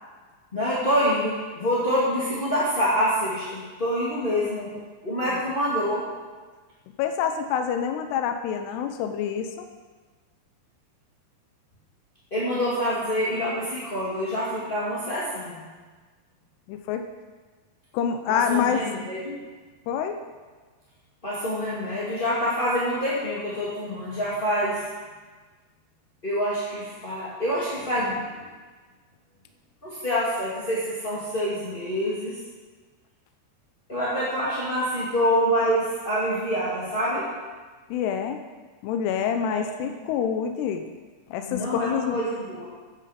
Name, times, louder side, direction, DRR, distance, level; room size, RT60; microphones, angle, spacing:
voice 1, 0.5-4.7 5.0-6.0 12.3-15.6 18.3-19.4 21.2-24.9 26.2-28.3 29.8-32.4 33.9-37.3 39.4-39.9 41.5-42.7, equal, 20° left, -9 dB, 1.4 m, -26 dB
voice 2, 7.0-9.7 16.7-17.0 17.9-18.8 19.9-20.2 37.9-38.4 38.8-40.8 41.3-42.2, left 8 dB, 80° left, 6 dB, 2.7 m, -27 dB
14.5 x 9.9 x 5.1 m, 1.4 s
omnidirectional pair, 4.9 m